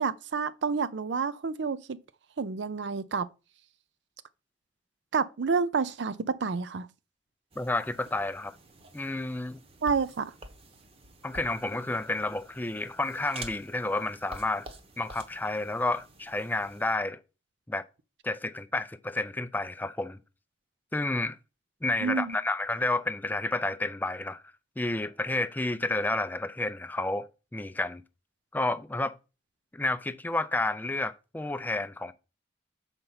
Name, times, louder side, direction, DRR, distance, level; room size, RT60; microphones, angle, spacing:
voice 1, 0.0-2.0 2.4-3.3 5.1-6.9 9.8-10.3 22.0-22.4, right 5 dB, 70° right, 0.5 m, -29 dB
sound 1, 7.5-17.0, right 2 dB, 35° right, 0.9 m, -49 dB
voice 2, 7.6-8.6 8.9-9.6 11.2-14.7 15.0-17.2 17.7-17.8 18.2-20.2 20.9-21.4 21.8-24.4 24.8-28.0 28.5-29.2 29.7-32.1, left 2 dB, 10° left, 0.4 m, -30 dB
6.6 x 4.4 x 5.6 m
head